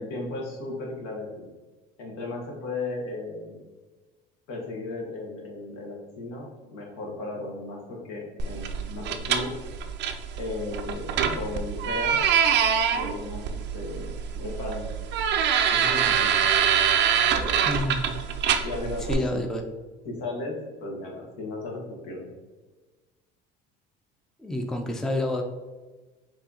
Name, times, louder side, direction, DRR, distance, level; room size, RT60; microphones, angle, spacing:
voice 1, 0.0-1.5 2.0-3.6 4.5-9.5 10.4-12.2 12.9-14.9 15.7-16.4 17.3-17.6 18.6-19.4 20.0-22.3, left 2 dB, 80° left, -2 dB, 1.3 m, -35 dB
sound 1, 8.4-19.1, right 8 dB, 55° right, 0.4 m, -25 dB
voice 2, 17.7-18.1 19.1-19.7 24.4-25.4, left 1 dB, ahead, 3 dB, 0.4 m, -28 dB
4.6 x 2.7 x 2.8 m, 1.3 s
supercardioid pair, 95°, 21 cm